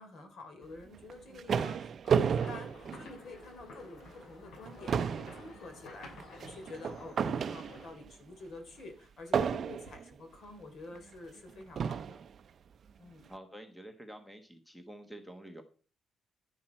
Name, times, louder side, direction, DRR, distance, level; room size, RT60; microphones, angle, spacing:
voice 1, 0.0-12.2 13.0-13.3, left 2 dB, 55° left, 6 dB, 3.2 m, -49 dB
sound 1, 0.9-3.6 4.1-4.2 4.5-8.1 9.3-10.1 11.0-11.1 11.8-12.3, right 7 dB, 45° right, 0.5 m, -32 dB
sound 2, 2.4-7.9, left 3 dB, 90° left, 7.0 m, -52 dB
voice 2, 13.3-15.6, right 1 dB, 5° left, 6 dB, 1.2 m, -48 dB
11.0 x 10.5 x 4.4 m, 0.38 s
cardioid pair, 165°, 0 cm